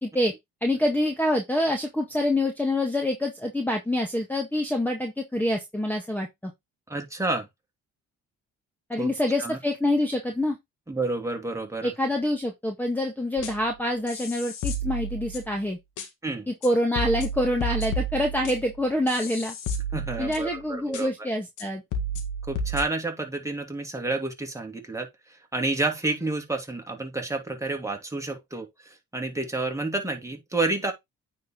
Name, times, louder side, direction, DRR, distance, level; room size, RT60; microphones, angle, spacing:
voice 1, 0.0-0.3 0.6-6.5 8.9-10.6 11.8-15.8 16.5-19.5 20.2-21.8, left 1 dB, 5° left, 1.7 m, -26 dB
voice 2, 6.9-7.5 9.0-9.1 9.4-9.6 10.9-11.9 16.2-16.5 19.9-21.1 22.5-25.1 25.5-28.7 29.1-30.9, right 2 dB, 10° right, 2.7 m, -29 dB
sound 1, 13.4-13.7 14.1-15.6 16.0-16.1 16.6-16.7 17.0-20.6 20.9-21.0 21.6-21.7 21.9-22.8, right 1 dB, 85° left, 2.0 m, -32 dB
9.3 x 4.5 x 3.8 m
cardioid pair, 90°, 30 cm